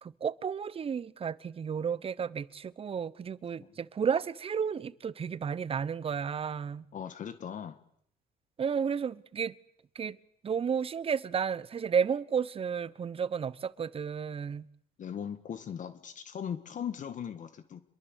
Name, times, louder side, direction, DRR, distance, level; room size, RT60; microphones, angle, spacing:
voice 1, 0.0-6.9 8.6-9.5 9.9-10.2 10.4-14.7, right 7 dB, 35° right, 19 dB, 1.1 m, -32 dB
voice 2, 6.9-7.8 15.0-17.8, left 8 dB, 50° left, 11 dB, 1.8 m, -39 dB
26.5 x 22.5 x 8.3 m, 0.68 s
cardioid pair, 110°, 17 cm